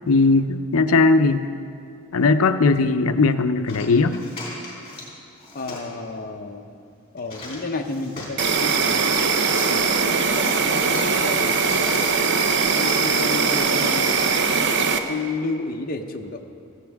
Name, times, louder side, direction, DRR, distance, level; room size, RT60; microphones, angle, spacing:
voice 1, 0.1-1.5 2.1-4.2, left 3 dB, 80° left, 10 dB, 0.6 m, -18 dB
sound 1, 3.7-5.1 5.4-5.9 7.2-8.4 9.3-9.7 10.2-12.1 12.5-13.5, left 2 dB, 25° left, 3.4 m, -38 dB
voice 2, 5.5-6.7 7.1-9.3 9.7-12.1 12.8-14.5 15.1-16.4, left 3 dB, 40° left, 3 dB, 0.8 m, -32 dB
Insect, 8.4-15.0, right 5 dB, 55° right, 0.7 m, -21 dB
16.0 x 15.0 x 3.5 m, 2.5 s
head